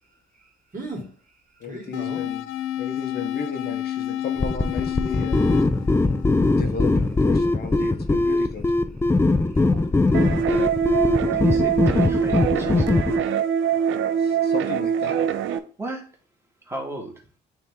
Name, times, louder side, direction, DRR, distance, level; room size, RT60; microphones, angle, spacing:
voice 1, 0.7-1.1 1.6-2.2 9.6-10.7, right 2 dB, 45° right, 2.4 m, -37 dB
voice 2, 1.6-2.4 2.8-5.4 6.5-8.7 14.2-15.2, left 5 dB, 55° left, 1.1 m, -34 dB
sound 1, 1.9-7.0, left 12 dB, 85° left, 0.4 m, -30 dB
sound 2, 4.4-13.2, left 2 dB, 15° left, 0.5 m, -21 dB
sound 3, 10.1-15.6, right 8 dB, 80° right, 0.6 m, -23 dB
voice 3, 11.3-12.9 15.8-16.0 16.6-17.1, right 1 dB, 15° right, 2.0 m, -33 dB
8.7 x 2.9 x 3.6 m
cardioid pair, 90°, 20 cm